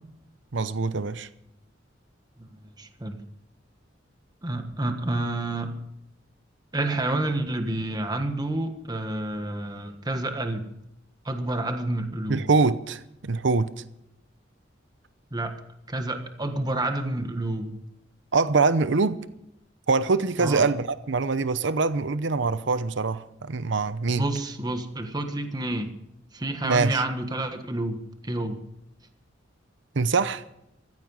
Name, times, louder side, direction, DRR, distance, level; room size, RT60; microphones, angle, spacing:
voice 1, 0.5-1.3 12.3-13.7 18.3-19.2 19.9-24.2 26.6-27.0 30.0-30.4, right 4 dB, 70° right, 0.7 m, -24 dB
voice 2, 2.8-3.2 4.4-5.7 6.7-10.7 11.2-12.5 15.3-15.6 15.9-17.8 20.4-20.6 24.1-25.9 26.3-28.0 28.2-28.6, right 2 dB, 20° right, 1.4 m, -29 dB
15.0 x 14.5 x 5.5 m
head